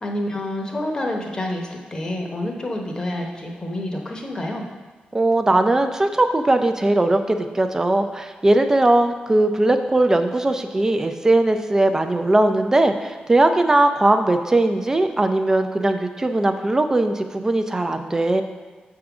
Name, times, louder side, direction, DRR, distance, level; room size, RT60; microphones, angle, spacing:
voice 1, 0.0-4.7, left 1 dB, 25° left, 1 dB, 0.9 m, -28 dB
voice 2, 5.1-18.4, right 2 dB, 20° right, 7 dB, 0.4 m, -19 dB
7.5 x 3.7 x 5.9 m, 1.4 s
wide cardioid pair, 160°, 3 cm